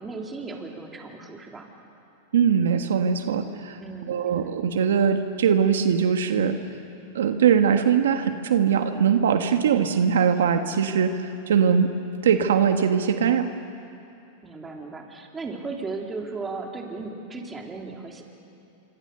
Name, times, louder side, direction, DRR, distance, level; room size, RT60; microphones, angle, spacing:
voice 1, 0.0-1.7 3.8-4.2 14.4-18.2, right 3 dB, 15° right, 1 dB, 3.4 m, -36 dB
voice 2, 2.3-3.8 4.1-6.6 7.1-11.9 12.2-13.5, right 7 dB, 85° right, 7 dB, 1.4 m, -21 dB
26.5 x 25.0 x 6.8 m, 2.7 s
hypercardioid pair, 120°, 0 cm